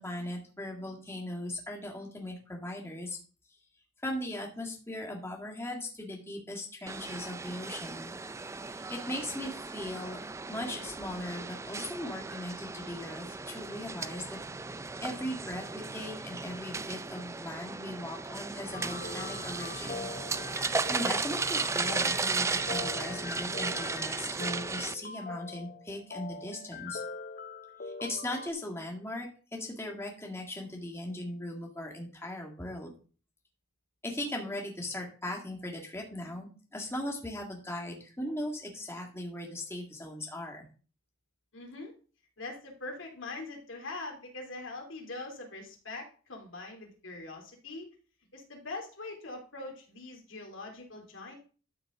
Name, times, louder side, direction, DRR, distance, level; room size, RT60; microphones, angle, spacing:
voice 1, 0.0-3.2 4.0-8.1 8.7-10.2 10.5-14.4 15.0-20.1 20.9-27.0 27.8-32.9 34.0-40.6, left 1 dB, 15° left, 0 dB, 2.0 m, -38 dB
sound 1, 6.9-24.9, right 4 dB, 15° right, 0.4 m, -35 dB
sound 2, 18.7-28.5, left 4 dB, 45° left, 0.8 m, -42 dB
voice 2, 41.5-41.9 42.4-47.9 48.3-51.4, left 2 dB, 75° left, 2 dB, 3.1 m, -42 dB
13.0 x 6.6 x 3.8 m, 0.38 s
head